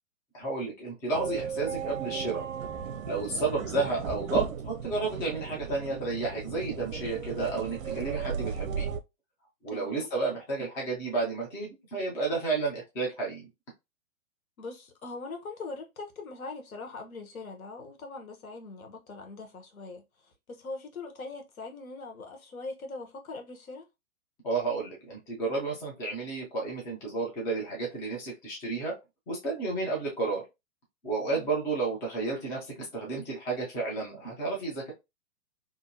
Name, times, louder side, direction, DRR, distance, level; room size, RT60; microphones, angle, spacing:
voice 1, 0.3-2.5 3.0-8.9 9.6-13.5 24.4-29.0 29.3-30.4 31.0-34.9, right 3 dB, 10° left, 0.4 m, -31 dB
sound 1, 1.1-9.0, right 7 dB, 75° right, 0.6 m, -36 dB
voice 2, 9.7-10.1 14.6-23.9 31.3-31.5, left 3 dB, 90° left, 1.0 m, -42 dB
2.6 x 2.5 x 2.6 m
hypercardioid pair, 130°, 41 cm